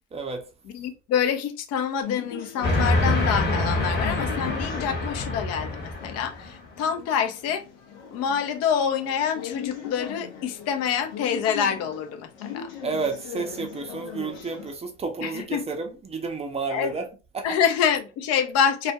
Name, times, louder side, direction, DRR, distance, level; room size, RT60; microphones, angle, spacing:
voice 1, 0.1-0.4 12.8-17.0 17.3-17.5, right 4 dB, 15° right, 0.6 m, -31 dB
voice 2, 0.6-7.6 8.1-12.7 15.2-15.7 16.7-17.0 17.4-18.9, left 7 dB, 45° left, 0.5 m, -26 dB
sound 1, 2.0-14.7, left 8 dB, 75° left, 0.7 m, -39 dB
Train, 2.6-6.5, left 2 dB, 30° left, 0.9 m, -25 dB
2.3 x 2.1 x 2.7 m
hypercardioid pair, 80°, 36 cm